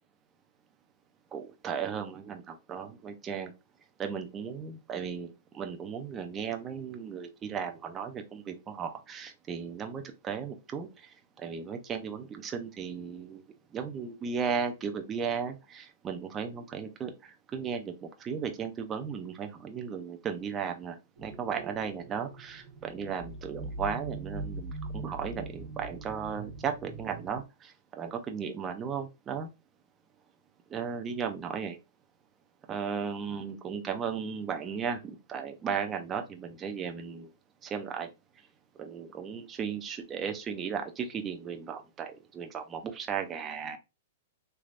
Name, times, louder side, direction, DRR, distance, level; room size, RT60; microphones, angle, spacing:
voice 1, 1.3-3.5 4.0-13.4 13.7-29.5 30.7-31.8 32.7-37.3 37.6-38.1 38.8-43.8, right 6 dB, 20° right, 0.5 m, -36 dB
sound 1, 21.2-27.4, right 2 dB, 85° right, 1.2 m, -41 dB
3.3 x 3.0 x 2.4 m
hypercardioid pair, 145°, 0 cm